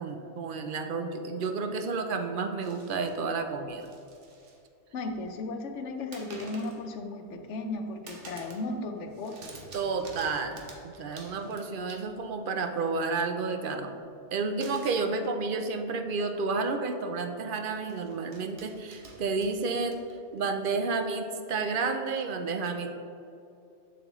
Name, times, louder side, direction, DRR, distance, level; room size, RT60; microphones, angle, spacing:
voice 1, 0.0-3.9 9.7-14.0 14.3-20.0 20.3-22.9, right 4 dB, 55° right, 6 dB, 0.7 m, -31 dB
sound 1, 2.6-3.2 3.7-4.6 4.9-5.4 6.1-6.8 7.3-7.7 8.1-8.7 9.0-12.4 14.6-15.1 16.0-16.1 16.5-16.6 17.7-20.4, right 3 dB, 80° right, 1.3 m, -50 dB
voice 2, 4.9-9.6, left 2 dB, 85° left, 5 dB, 1.0 m, -35 dB
7.2 x 7.2 x 3.1 m, 2.7 s
omnidirectional pair, 1.2 m